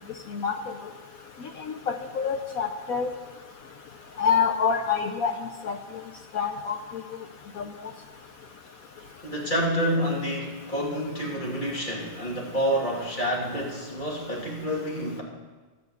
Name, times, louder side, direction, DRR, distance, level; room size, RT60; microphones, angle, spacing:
voice 1, 1.9-3.1 4.2-5.3 5.6-5.8 6.3-6.8 7.6-7.7, left 6 dB, 65° left, 3 dB, 0.9 m, -26 dB
voice 2, 9.2-15.2, equal, 25° left, -4 dB, 2.9 m, -28 dB
12.0 x 7.0 x 8.1 m, 1.3 s
omnidirectional pair, 2.2 m